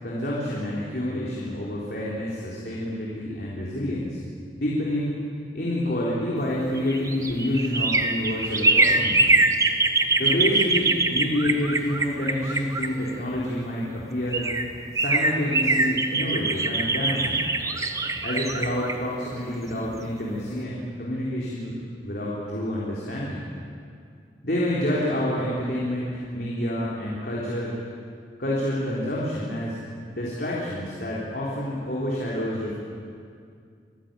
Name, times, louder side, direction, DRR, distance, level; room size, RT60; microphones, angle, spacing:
voice 1, 0.0-4.2 4.6-5.1 5.5-9.3 10.2-14.5 14.9-17.5 18.2-21.8 22.0-23.4 24.4-27.7 28.4-29.8 30.1-32.7, left 1 dB, 55° left, -6 dB, 3.9 m, -28 dB
sound 1, 6.6-13.5 14.0-14.1 14.3-20.1 20.4-20.5, right 3 dB, 20° right, 1.1 m, -23 dB
26.5 x 15.0 x 9.1 m, 2.2 s
head